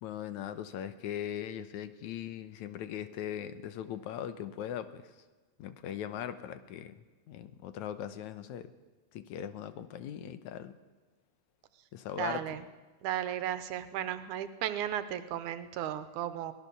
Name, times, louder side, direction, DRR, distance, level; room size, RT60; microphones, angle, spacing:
voice 1, 0.0-5.1 5.6-8.7 9.1-10.8 11.9-12.4, left 10 dB, 80° left, 12 dB, 2.3 m, -40 dB
voice 2, 12.2-12.6 13.0-16.5, right 11 dB, 90° right, 12 dB, 2.5 m, -35 dB
23.0 x 17.0 x 7.0 m, 1.3 s
omnidirectional pair, 3.4 m